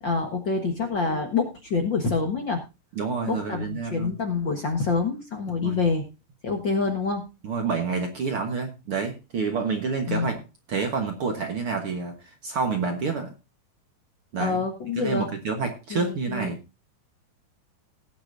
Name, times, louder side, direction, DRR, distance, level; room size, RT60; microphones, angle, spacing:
voice 1, 0.0-2.6 3.3-6.1 6.4-7.2 10.1-10.4 14.4-15.3 15.9-16.5, left 4 dB, 45° left, 4 dB, 1.6 m, -26 dB
voice 2, 2.9-4.1 5.6-5.8 7.4-10.4 10.7-13.3 14.3-14.6 15.0-16.6, right 4 dB, 55° right, 4 dB, 1.8 m, -28 dB
18.5 x 9.1 x 2.6 m, 0.27 s
omnidirectional pair, 3.9 m